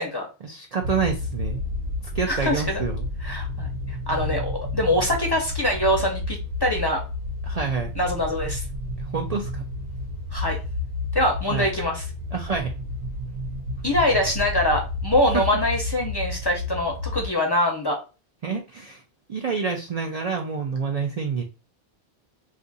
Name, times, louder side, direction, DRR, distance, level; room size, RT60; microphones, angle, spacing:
voice 1, 0.4-1.6 2.1-3.1 7.5-7.9 9.1-9.6 11.5-11.7 12.3-12.7 15.3-15.4 18.4-19.0 19.3-21.4, right 5 dB, 55° right, 2 dB, 0.4 m, -27 dB
sound 1, 0.8-17.3, left 2 dB, 75° right, 1.0 m, -31 dB
voice 2, 2.3-2.8 3.2-3.7 4.1-7.0 8.0-8.6 10.3-10.6 11.1-12.0 13.8-18.0, left 1 dB, 30° left, 1 dB, 0.5 m, -24 dB
2.6 x 2.5 x 3.9 m, 0.31 s
omnidirectional pair, 1.1 m